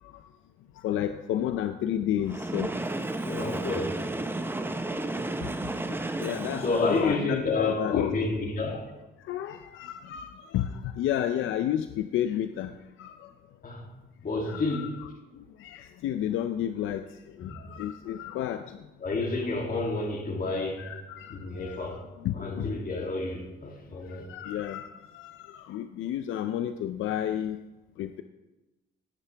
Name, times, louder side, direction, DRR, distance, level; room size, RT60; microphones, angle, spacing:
voice 1, 0.8-2.7 5.9-8.3 9.2-12.7 13.0-13.3 14.5-15.1 15.6-17.0 17.4-18.8 20.8-21.9 22.2-22.8 24.1-27.6 28.0-28.2, left 11 dB, 80° left, 0.6 m, -31 dB
Train, 2.2-7.3, right 2 dB, 10° right, 0.8 m, -33 dB
voice 2, 3.2-4.0 6.6-8.9 13.6-13.9 14.2-14.9 17.4-17.6 19.0-20.9 21.3-22.1 22.3-24.2, left 3 dB, 45° left, 2.7 m, -30 dB
16.0 x 9.8 x 3.5 m
cardioid pair, 90°, 20 cm